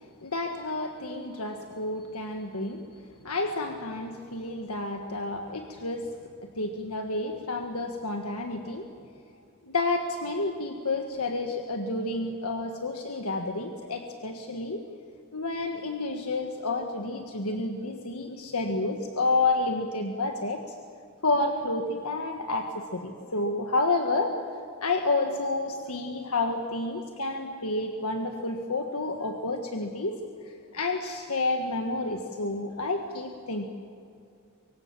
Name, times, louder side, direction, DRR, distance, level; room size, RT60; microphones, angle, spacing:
voice 1, 0.2-2.8 3.2-6.1 6.5-8.9 9.7-14.8 15.3-20.6 21.2-24.4 24.8-30.2 30.7-33.7, left 2 dB, 80° left, 4 dB, 1.6 m, -30 dB
24.0 x 24.0 x 7.4 m, 2.5 s
head